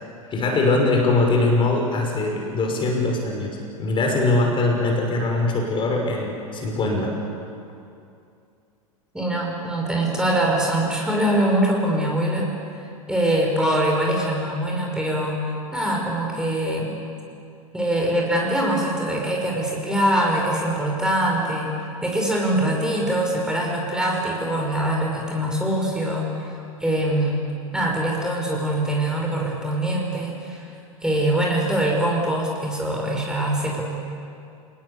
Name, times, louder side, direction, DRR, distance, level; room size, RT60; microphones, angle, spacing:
voice 1, 0.3-7.1, left 2 dB, 25° left, 1 dB, 6.0 m, -22 dB
voice 2, 9.1-12.5 13.1-15.4 15.7-16.9 17.7-21.7 22.0-26.5 26.8-30.7 31.0-33.8, right 1 dB, 5° right, -2 dB, 6.0 m, -23 dB
29.0 x 19.5 x 8.4 m, 2.5 s
figure-of-eight pair, 90°, 18 cm